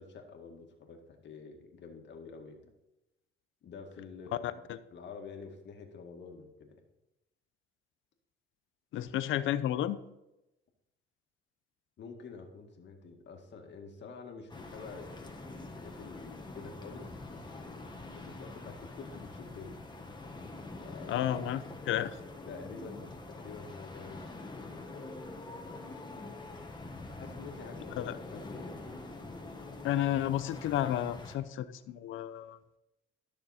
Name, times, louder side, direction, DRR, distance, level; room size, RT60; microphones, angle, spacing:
voice 1, 0.0-2.7 3.6-4.6 4.9-6.8 12.0-15.3 15.7-19.8 20.8-21.3 22.5-25.5 25.9-26.6 27.2-28.8, left 5 dB, 65° left, 3 dB, 2.0 m, -48 dB
voice 2, 4.4-4.8 8.9-10.0 21.1-22.2 28.0-28.2 29.8-32.6, left 12 dB, 80° left, 14 dB, 0.6 m, -32 dB
sound 1, 14.5-31.4, left 2 dB, 20° left, 1.5 m, -45 dB
13.5 x 6.6 x 4.3 m, 0.93 s
cardioid pair, 90°, 20 cm